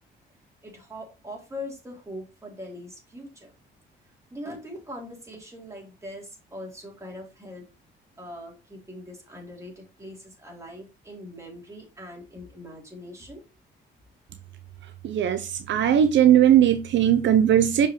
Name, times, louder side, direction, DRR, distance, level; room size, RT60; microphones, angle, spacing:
voice 1, 0.6-3.5 4.3-7.7 8.2-13.4, left 1 dB, 15° right, 3.7 m, -41 dB
voice 2, 15.0-17.9, right 10 dB, 65° right, 0.7 m, -19 dB
6.6 x 5.3 x 3.2 m
cardioid pair, 90°, 20 cm